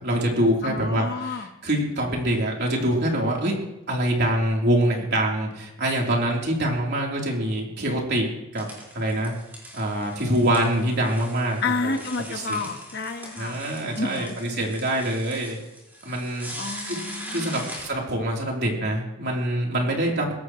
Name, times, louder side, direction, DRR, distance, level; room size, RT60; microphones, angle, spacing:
voice 1, 0.0-3.5 3.9-8.3 8.5-8.7 8.9-9.3 9.7-12.0 12.3-12.7 13.4-15.6 16.0-16.5 16.8-17.0 17.3-20.3, right 1 dB, 50° right, -1 dB, 3.5 m, -25 dB
voice 2, 0.6-1.5 11.6-13.5 13.9-14.3 16.5-17.7, left 3 dB, 45° left, 5 dB, 1.3 m, -30 dB
sound 1, 8.5-17.9, equal, 10° right, 4.8 m, -41 dB
22.5 x 17.5 x 3.2 m, 0.91 s
head